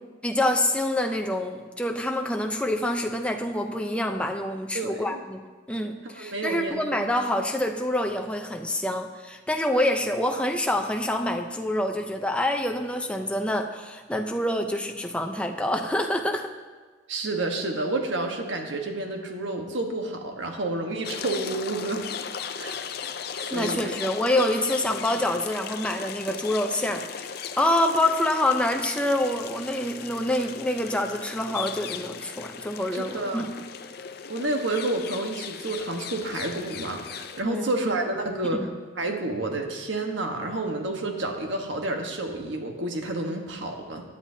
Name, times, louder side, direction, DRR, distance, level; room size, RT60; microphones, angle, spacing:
voice 1, 0.2-5.4 5.7-16.5 23.5-33.5 37.4-37.7 38.4-38.7, left 1 dB, 5° left, 4 dB, 0.6 m, -26 dB
voice 2, 4.7-5.2 6.2-7.1 17.1-22.0 22.6-22.8 23.5-23.9 32.9-33.5 34.3-38.6 39.0-44.0, right 2 dB, 70° right, 3 dB, 1.3 m, -30 dB
sound 1, 21.0-37.4, left 7 dB, 50° left, 0.5 m, -37 dB
16.5 x 10.0 x 2.8 m, 1.4 s
head